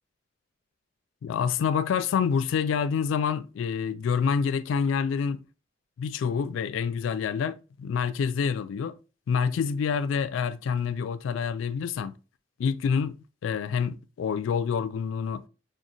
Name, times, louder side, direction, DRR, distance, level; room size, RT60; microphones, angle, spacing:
voice 1, 1.2-5.4 6.0-8.9 9.3-12.1 12.6-13.1 13.4-15.4, left 6 dB, 90° left, 0.3 m, -27 dB
6.0 x 2.1 x 2.6 m
head